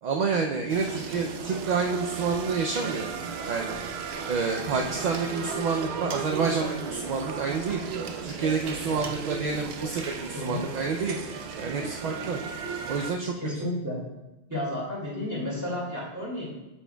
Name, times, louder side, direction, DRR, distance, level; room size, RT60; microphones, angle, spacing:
voice 1, 0.0-3.1 3.5-3.7 4.3-7.8 8.2-11.2 11.6-12.4 12.9-13.7, right 5 dB, 55° right, 2 dB, 0.5 m, -28 dB
sound 1, 0.7-13.1, right 6 dB, 75° right, 0.9 m, -35 dB
voice 2, 13.3-14.0 14.5-16.7, left 1 dB, 15° right, -5 dB, 2.1 m, -32 dB
8.6 x 7.1 x 2.2 m, 1.0 s
omnidirectional pair, 1.1 m